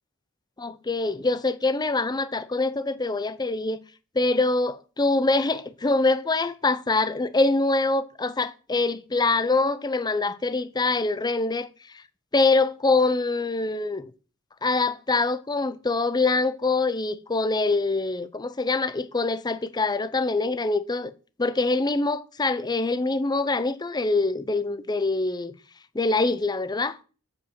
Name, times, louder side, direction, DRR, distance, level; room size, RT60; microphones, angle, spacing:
voice 1, 0.6-3.8 4.2-4.7 5.0-11.7 12.3-14.1 14.6-21.1 21.4-25.5 25.9-27.0, left 3 dB, 20° left, 0.6 m, -24 dB
8.5 x 5.2 x 7.2 m
head